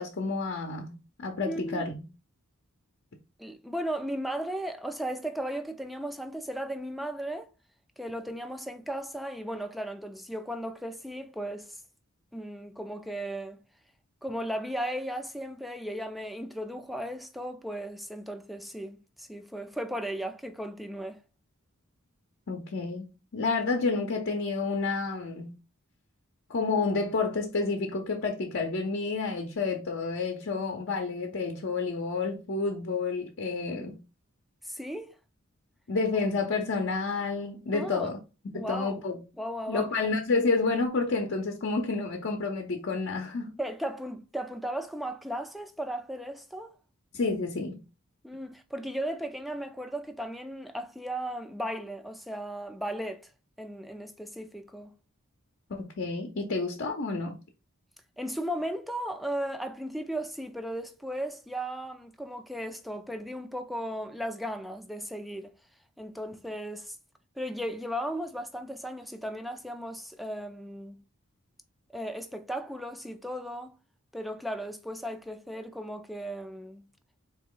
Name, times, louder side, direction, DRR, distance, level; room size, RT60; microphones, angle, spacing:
voice 1, 0.0-2.0 22.5-25.6 26.5-34.0 35.9-38.2 38.5-39.2 39.7-43.6 47.1-47.8 55.7-57.4, left 4 dB, 60° left, 0.6 m, -30 dB
voice 2, 1.5-1.9 3.4-7.5 8.0-11.8 12.3-13.6 14.2-21.2 34.6-35.2 37.7-38.1 38.5-39.0 39.4-39.9 43.6-46.7 48.2-53.3 53.6-54.9 58.2-65.5 66.0-67.0 67.4-71.0 71.9-73.8 74.1-76.8, equal, ahead, 0.3 m, -36 dB
3.9 x 2.8 x 3.7 m
head